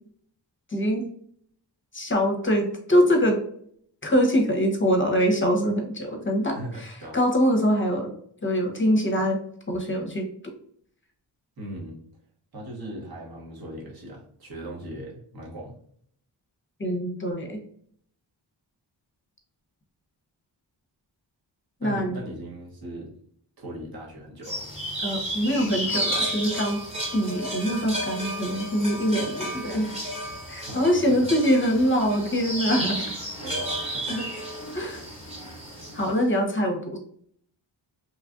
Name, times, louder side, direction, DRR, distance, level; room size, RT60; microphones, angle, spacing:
voice 1, 0.7-1.1 1.9-3.4 4.0-8.1 8.4-9.4 9.7-10.2 16.8-17.6 21.8-22.2 25.0-26.8 27.1-29.9 30.5-33.0 34.1-34.3 34.7-35.1 35.9-37.0, equal, 25° left, 2 dB, 0.7 m, -24 dB
voice 2, 6.5-7.2 11.6-12.0 12.5-15.8 21.8-23.1 23.6-24.7 30.7-31.4 33.4-34.2, right 1 dB, 55° right, -3 dB, 1.1 m, -38 dB
sound 1, 24.4-36.1, equal, 15° right, 1.2 m, -32 dB
3.0 x 2.4 x 2.4 m, 0.63 s
cardioid pair, 65°, 45 cm